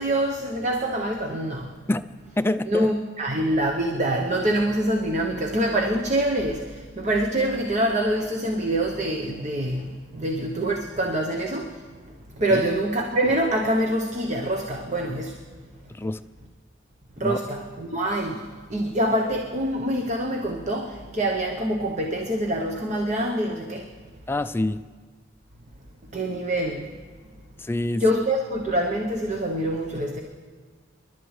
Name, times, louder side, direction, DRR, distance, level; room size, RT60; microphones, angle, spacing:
voice 1, 0.0-1.7 2.7-11.8 12.4-15.4 17.2-18.4 18.7-23.9 26.1-26.9 27.9-30.2, right 1 dB, 40° right, 2 dB, 0.8 m, -25 dB
voice 2, 2.4-2.9 12.5-12.6 15.9-16.2 17.2-17.4 24.3-24.8 27.6-28.0, left 1 dB, 10° left, 12 dB, 0.3 m, -26 dB
28.5 x 11.5 x 3.2 m, 1.5 s
head